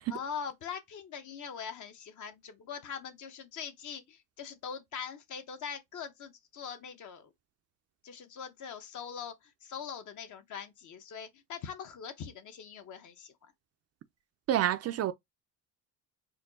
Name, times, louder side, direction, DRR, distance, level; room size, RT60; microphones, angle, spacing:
voice 1, 0.1-7.3 8.0-13.3, left 7 dB, 55° left, 1.0 m, -42 dB
voice 2, 14.5-15.1, right 11 dB, 45° right, 0.4 m, -28 dB
4.4 x 2.2 x 3.9 m
cardioid pair, 115°, 36 cm